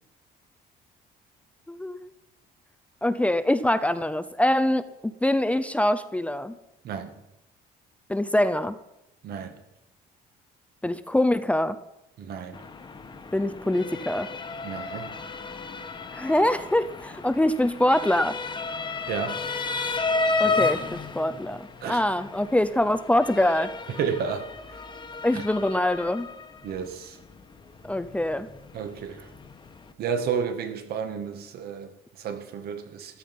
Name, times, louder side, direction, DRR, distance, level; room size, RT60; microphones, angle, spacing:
voice 1, 1.7-2.1 3.0-6.6 8.1-8.8 10.8-11.8 13.3-14.3 16.1-18.4 20.4-23.7 25.2-26.3 27.8-28.5, left 1 dB, 10° left, 11 dB, 0.7 m, -24 dB
voice 2, 9.2-9.6 12.2-12.6 14.6-15.2 19.1-19.5 21.8-22.0 23.9-24.8 25.3-25.4 26.6-27.2 28.7-29.3 30.0-33.2, right 7 dB, 65° right, 7 dB, 1.9 m, -32 dB
Motor vehicle (road) / Siren, 12.5-29.9, left 3 dB, 30° left, 1.4 m, -33 dB
14.0 x 12.0 x 5.5 m, 0.91 s
cardioid pair, 110°, 17 cm